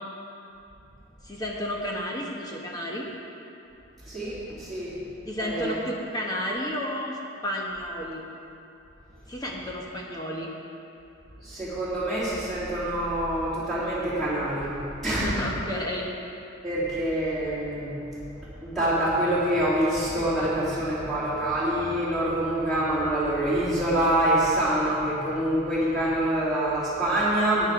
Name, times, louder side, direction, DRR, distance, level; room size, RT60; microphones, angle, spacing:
voice 1, 1.2-3.1 5.3-7.2 7.4-8.2 9.3-10.5 15.1-16.1, equal, 20° left, -2 dB, 1.1 m, -31 dB
voice 2, 4.0-5.0 5.4-5.7 11.4-15.5 16.6-18.2 18.6-27.7, right 1 dB, ahead, -12 dB, 3.2 m, -26 dB
13.5 x 9.4 x 4.8 m, 2.7 s
head